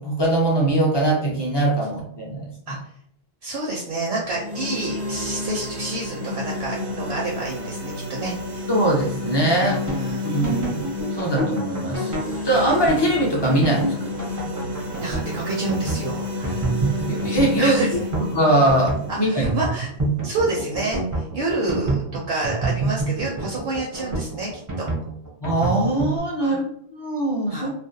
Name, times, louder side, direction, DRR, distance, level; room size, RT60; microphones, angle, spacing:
voice 1, 0.0-2.8 8.7-9.8 10.2-10.8 11.1-12.1 12.4-13.9 17.1-17.9 18.3-19.5 25.4-27.7, right 1 dB, 35° left, -3 dB, 0.5 m, -21 dB
voice 2, 3.4-8.7 9.6-10.3 15.0-16.7 17.6-18.0 19.1-19.9 20.2-24.9 26.4-26.6 27.5-27.7, right 2 dB, 70° right, -2 dB, 0.8 m, -29 dB
sound 1, 4.1-20.2, left 2 dB, 90° right, 1.1 m, -31 dB
sound 2, 9.3-26.2, right 2 dB, 25° right, 0.5 m, -27 dB
2.4 x 2.0 x 2.6 m, 0.68 s
omnidirectional pair, 1.1 m